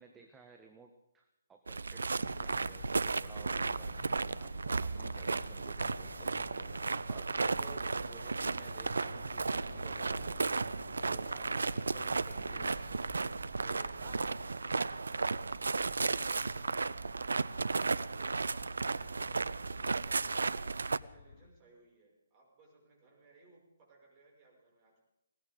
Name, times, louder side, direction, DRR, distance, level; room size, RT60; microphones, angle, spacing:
voice 1, 0.0-2.9 3.2-4.1 4.3-10.4 11.0-13.0 13.6-14.5, right 5 dB, 10° right, 4 dB, 1.3 m, -57 dB
sound 1, 1.7-21.0, right 4 dB, 70° right, 0.5 m, -34 dB
sound 2, 2.2-21.5, left 5 dB, 55° left, 1.2 m, -53 dB
sound 3, 7.0-14.3, right 3 dB, 55° right, 2.1 m, -57 dB
voice 2, 20.7-25.0, right 3 dB, 25° right, -1 dB, 6.4 m, -64 dB
20.5 x 18.0 x 3.9 m, 0.89 s
figure-of-eight pair, 135°, 0 cm